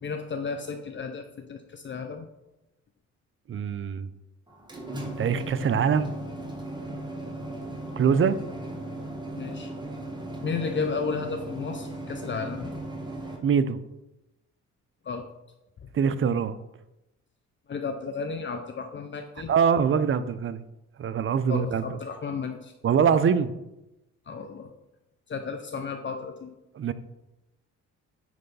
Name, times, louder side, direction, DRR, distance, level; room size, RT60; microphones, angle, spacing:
voice 1, 0.0-1.2 1.5-2.3 6.9-7.0 9.4-9.7 10.4-12.7 15.0-15.3 17.7-19.5 21.5-22.7 24.3-24.7 25.3-26.5, left 5 dB, 40° left, 5 dB, 0.7 m, -33 dB
voice 2, 3.5-4.1 5.2-6.1 8.0-8.4 13.4-13.8 15.9-16.6 19.5-20.6 21.0-22.0 22.8-23.5 26.7-26.9, right 7 dB, 45° right, 13 dB, 0.6 m, -23 dB
sound 1, 4.5-13.4, right 1 dB, 15° right, 1.6 m, -37 dB
9.5 x 3.4 x 5.5 m, 0.93 s
cardioid pair, 90°, 30 cm